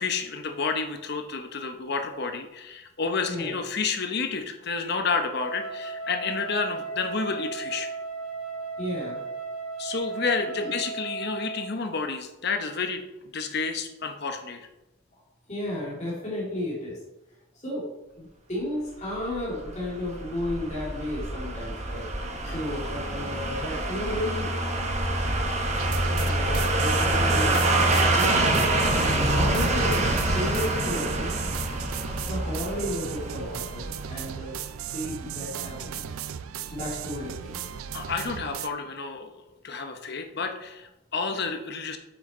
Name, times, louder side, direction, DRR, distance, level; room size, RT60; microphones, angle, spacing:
voice 1, 0.0-7.9 9.8-13.0 13.3-14.7 22.5-22.6 37.9-39.3 39.6-42.0, left 4 dB, 50° left, 6 dB, 0.8 m, -30 dB
Wind instrument woodwind instrument, 5.3-11.8, right 4 dB, 70° left, 1.4 m, -35 dB
voice 2, 8.8-9.2 10.6-10.7 15.1-15.2 15.5-17.0 17.6-17.9 18.2-22.0 22.4-24.5 26.1-27.9 28.1-28.8 29.3-30.0 30.3-31.3 32.2-36.1 36.7-37.6, left 1 dB, 35° left, -5 dB, 2.6 m, -33 dB
sound 1, 19.3-34.3 34.6-34.7, right 2 dB, 30° right, 1.0 m, -26 dB
sound 2, 25.7-38.7, right 9 dB, 80° right, 0.4 m, -36 dB
8.1 x 6.3 x 4.2 m, 0.99 s
head